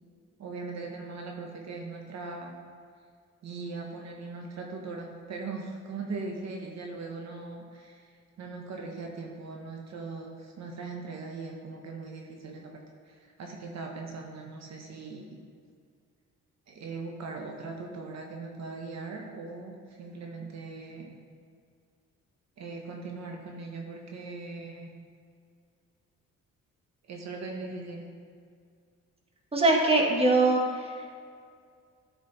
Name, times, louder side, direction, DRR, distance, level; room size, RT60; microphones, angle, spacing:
voice 1, 0.4-2.6 3.4-8.1 8.4-12.7 13.1-15.4 16.7-21.2 22.6-24.9 27.1-28.0, right 3 dB, 60° right, 1 dB, 1.1 m, -40 dB
voice 2, 29.5-30.9, right 2 dB, 20° right, 0 dB, 1.4 m, -22 dB
11.0 x 5.0 x 4.0 m, 2.2 s
cardioid pair, 90°, 30 cm